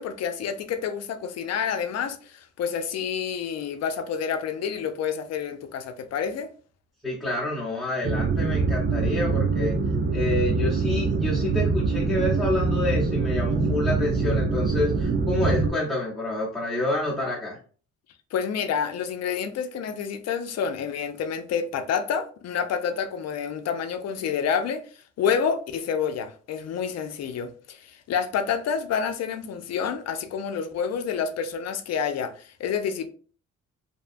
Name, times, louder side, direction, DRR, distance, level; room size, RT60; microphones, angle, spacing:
voice 1, 0.0-6.5 18.3-33.1, left 7 dB, 60° left, 0.5 m, -28 dB
voice 2, 7.0-9.7 10.1-17.6, left 2 dB, ahead, 0.9 m, -28 dB
sound 1, 8.0-15.7, right 4 dB, 35° right, 0.5 m, -24 dB
2.7 x 2.2 x 2.5 m
cardioid pair, 90°, 30 cm